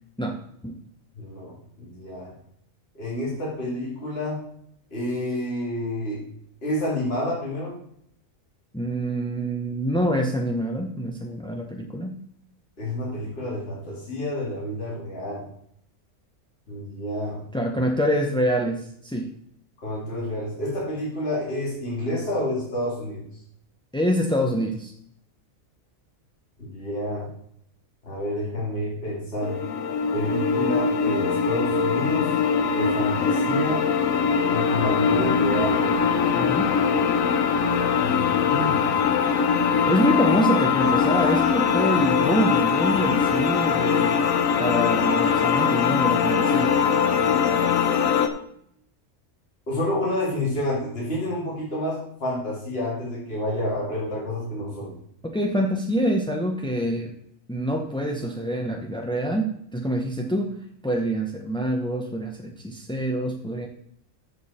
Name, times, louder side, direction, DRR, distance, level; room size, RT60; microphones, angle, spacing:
voice 1, 0.2-0.8 8.7-12.2 17.5-19.3 23.9-24.9 36.3-36.7 39.9-44.2 44.6-46.8 55.2-57.1 57.5-60.6 60.8-63.7, equal, 5° left, 2 dB, 0.5 m, -26 dB
voice 2, 1.1-2.3 2.9-4.4 4.9-6.2 6.6-7.8 12.8-15.5 16.7-17.4 19.8-23.2 26.6-27.3 28.0-29.6 30.1-32.3 32.7-33.8 34.5-35.9 38.0-39.0 49.7-54.9, left 1 dB, 45° left, -5 dB, 3.0 m, -29 dB
sound 1, 29.4-48.3, left 6 dB, 85° left, 1.2 m, -22 dB
14.0 x 5.0 x 4.3 m, 0.70 s
omnidirectional pair, 1.4 m